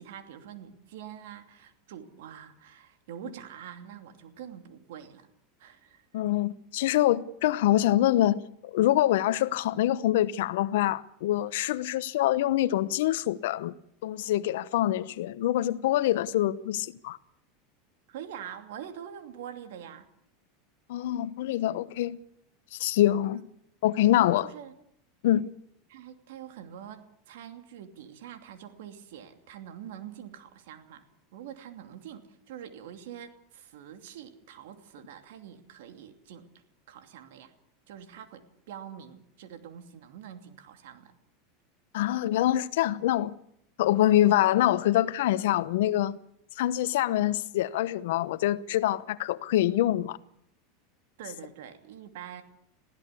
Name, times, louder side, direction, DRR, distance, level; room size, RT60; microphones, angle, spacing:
voice 1, 0.0-5.3 5.6-6.2 18.1-20.1 23.2-23.4 24.4-24.7 25.9-31.0 31.3-36.5 36.9-37.5 37.9-41.1 51.2-52.4, right 9 dB, 75° right, 2.8 m, -45 dB
voice 2, 6.1-13.7 14.0-17.2 20.9-22.2 22.7-23.4 23.8-24.5 25.2-25.5 41.9-43.3 43.8-46.2 46.6-50.2, left 13 dB, 75° left, 0.9 m, -25 dB
21.5 x 15.5 x 8.4 m
hypercardioid pair, 100°, 0 cm